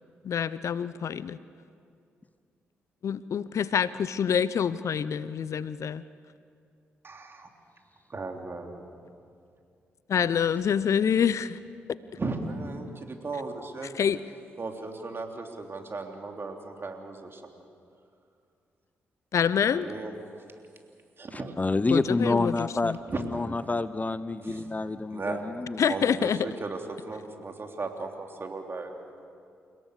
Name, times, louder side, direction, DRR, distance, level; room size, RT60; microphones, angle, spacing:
voice 1, 0.2-1.4 3.0-6.0 10.1-11.6 13.9-14.2 19.3-19.9 21.9-23.0 25.8-26.5, left 7 dB, 55° left, 17 dB, 0.6 m, -26 dB
voice 2, 7.0-7.5 8.1-8.8 12.2-13.9 14.6-17.4 19.6-20.1 21.2-21.6 21.9-22.0 23.1-23.4 24.4-24.7 25.1-25.4 25.9-29.1, right 3 dB, 40° right, 3 dB, 3.3 m, -36 dB
voice 3, 21.3-25.8, left 3 dB, 25° left, 14 dB, 0.8 m, -28 dB
29.5 x 17.5 x 6.7 m, 2.4 s
hypercardioid pair, 40°, 6 cm